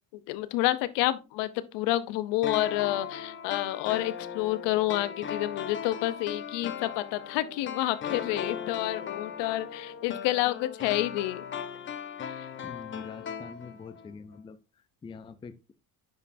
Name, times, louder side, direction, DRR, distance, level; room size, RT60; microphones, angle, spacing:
voice 1, 0.3-11.4 12.2-12.5, left 15 dB, 90° left, 0.8 m, -29 dB
sound 1, 2.4-14.1 14.3-14.4, left 8 dB, 30° left, 0.8 m, -38 dB
voice 2, 12.6-15.7, left 5 dB, 15° left, 0.4 m, -45 dB
9.6 x 5.3 x 2.6 m
cardioid pair, 140°, 41 cm